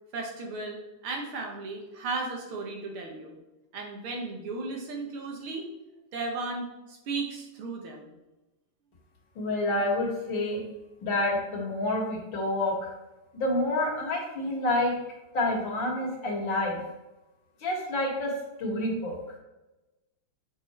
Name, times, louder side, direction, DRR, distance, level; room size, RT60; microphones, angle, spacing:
voice 1, 0.1-3.4 3.7-5.6 6.1-8.1, right 3 dB, 80° right, 1 dB, 2.1 m, -35 dB
voice 2, 9.4-10.6 11.0-12.9 13.3-14.9 15.3-16.8 17.6-18.3 18.6-19.1, left 1 dB, 60° left, -2 dB, 2.3 m, -28 dB
7.0 x 4.1 x 4.3 m, 1.0 s
omnidirectional pair, 2.4 m